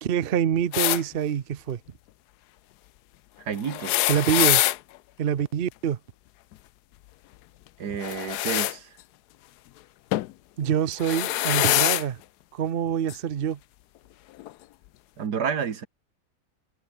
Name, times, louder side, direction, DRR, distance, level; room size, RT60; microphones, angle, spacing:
voice 1, 0.0-1.8 4.1-4.6 5.2-6.0 10.6-12.2 12.5-13.6, right 9 dB, 45° right, 0.8 m, -25 dB
sound 1, 0.7-1.0 3.6-4.8 8.0-8.7 10.1-10.3 10.9-12.0 13.1-13.2 14.4-14.5, left 16 dB, 85° left, 1.1 m, -24 dB
voice 2, 3.4-4.0 7.8-9.0 15.2-15.9, right 7 dB, 85° right, 2.2 m, -30 dB
omnidirectional pair, 1.7 m